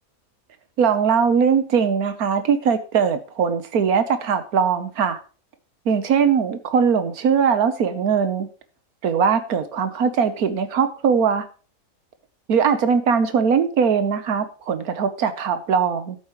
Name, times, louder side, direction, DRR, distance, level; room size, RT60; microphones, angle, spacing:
voice 1, 0.8-5.2 5.9-8.5 9.0-11.5 12.5-16.2, right 6 dB, 85° right, 10 dB, 1.5 m, -20 dB
12.0 x 8.5 x 3.1 m, 0.38 s
omnidirectional pair, 1.5 m